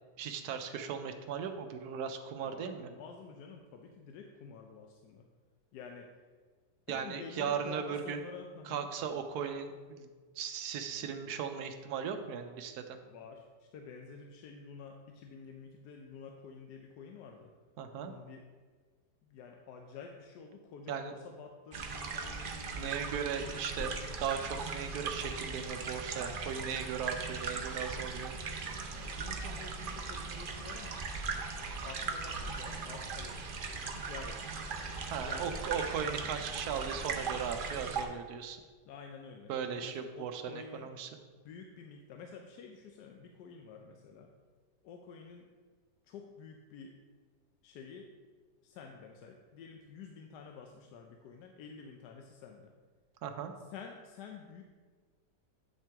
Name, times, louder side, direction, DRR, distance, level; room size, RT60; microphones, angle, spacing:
voice 1, 0.2-2.9 6.9-8.2 8.7-10.1 10.4-13.0 17.8-18.1 20.9-21.1 22.4-28.3 35.1-38.6 39.5-41.1 53.2-53.5, right 7 dB, 75° right, 7 dB, 1.1 m, -37 dB
voice 2, 2.4-5.3 5.7-6.1 6.9-8.9 13.0-17.5 18.0-18.4 19.2-23.4 23.7-24.2 28.9-31.0 31.8-33.4 33.9-34.4 35.2-35.6 38.9-39.5 39.8-40.9 41.4-44.3 44.8-45.5 46.0-47.0 47.6-48.1 48.6-52.7 53.6-54.6, left 5 dB, 75° left, 3 dB, 1.2 m, -49 dB
sound 1, 21.7-38.0, right 4 dB, 90° right, 0.4 m, -39 dB
8.4 x 5.8 x 3.5 m, 1.5 s
omnidirectional pair, 1.8 m